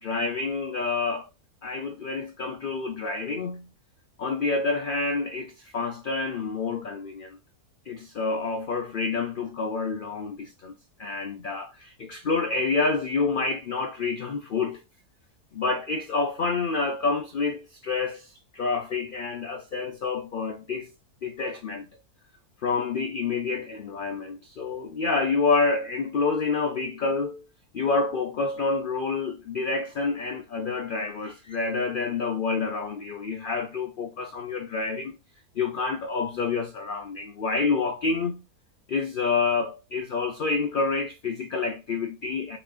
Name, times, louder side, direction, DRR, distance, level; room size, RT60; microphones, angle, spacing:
voice 1, 0.0-1.3 1.6-3.7 4.2-7.4 7.9-10.7 11.0-14.8 15.5-20.9 21.2-21.9 22.6-27.4 27.7-35.2 35.6-38.5 38.9-42.6, left 4 dB, 80° left, 0.4 m, -28 dB
4.1 x 2.5 x 4.8 m
omnidirectional pair, 1.6 m